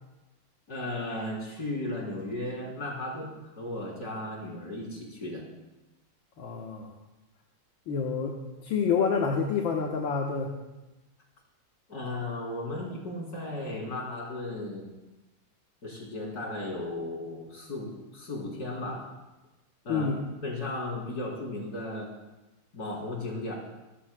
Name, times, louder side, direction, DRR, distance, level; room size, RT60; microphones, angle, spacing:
voice 1, 0.7-5.4 11.9-14.9 15.8-19.1 19.8-20.1 20.4-22.1 22.7-23.5, left 2 dB, 45° left, -2 dB, 4.0 m, -35 dB
voice 2, 6.4-6.9 7.9-10.5 19.9-20.2, left 5 dB, 65° left, 1 dB, 1.9 m, -28 dB
26.0 x 14.5 x 2.3 m, 1.1 s
omnidirectional pair, 2.3 m